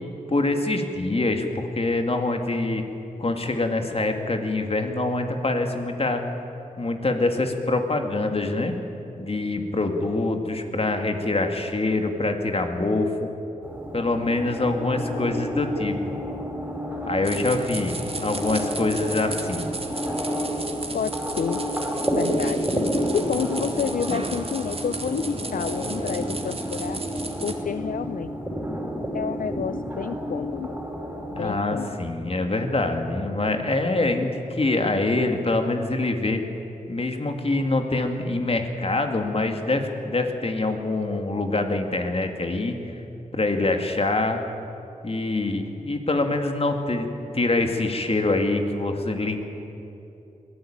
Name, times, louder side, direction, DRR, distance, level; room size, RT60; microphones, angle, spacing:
voice 1, 0.3-2.8 3.2-6.2 6.8-8.8 9.2-13.3 13.9-16.0 17.1-19.7 31.3-36.4 36.9-42.8 43.3-44.4 45.0-47.1 47.3-49.4, left 2 dB, 45° left, 5 dB, 2.6 m, -25 dB
sound 1, 13.6-31.6, equal, 10° right, 5.5 m, -30 dB
sound 2, 17.2-27.5, right 3 dB, 40° right, 2.2 m, -35 dB
voice 2, 20.9-21.6 22.2-22.8 23.1-27.0 27.4-28.4 29.1-30.8 31.3-32.0, left 7 dB, 75° left, 13 dB, 0.5 m, -30 dB
22.0 x 15.5 x 9.1 m, 2.9 s
cardioid pair, 50°, 14 cm